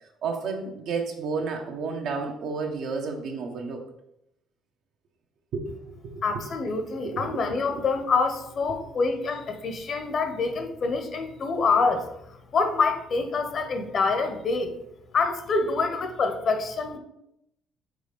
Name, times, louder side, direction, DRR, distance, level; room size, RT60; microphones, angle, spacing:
voice 1, 0.2-3.8 5.5-6.2 7.0-7.4 7.7-7.8, right 4 dB, 65° right, 3 dB, 1.1 m, -31 dB
voice 2, 6.2-14.7 15.1-17.0, left 4 dB, 45° left, 7 dB, 0.9 m, -26 dB
5.1 x 4.1 x 5.2 m, 0.81 s
cardioid pair, 110°, 0 cm